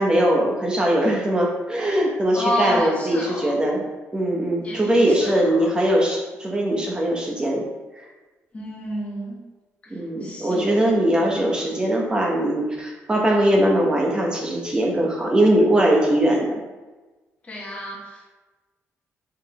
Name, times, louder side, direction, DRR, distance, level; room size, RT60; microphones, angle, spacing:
voice 1, 0.0-3.8 4.1-7.7 9.9-16.6, right 1 dB, 15° right, -2 dB, 0.9 m, -21 dB
voice 2, 2.3-3.5 4.6-5.7 8.5-9.4 10.2-10.9 17.5-18.3, equal, 25° left, -3 dB, 1.2 m, -29 dB
4.8 x 3.4 x 2.9 m, 1.2 s
cardioid pair, 130°, 5 cm